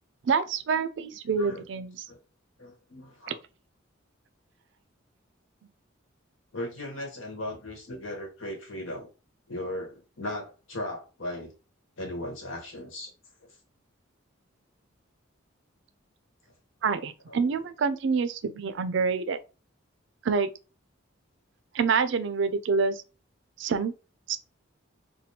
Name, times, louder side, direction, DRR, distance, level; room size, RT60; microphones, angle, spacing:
voice 1, 0.2-2.0 16.8-19.4 20.2-20.5 21.7-23.0 23.6-23.9 24.3-24.4, right 5 dB, 60° right, 0.4 m, -27 dB
voice 2, 1.3-1.7 2.1-2.2 2.6-3.4 6.5-9.1 9.5-11.5 12.0-13.1 13.4-13.5 17.3-17.5, left 1 dB, 75° left, 1.2 m, -37 dB
3.4 x 2.2 x 2.7 m
head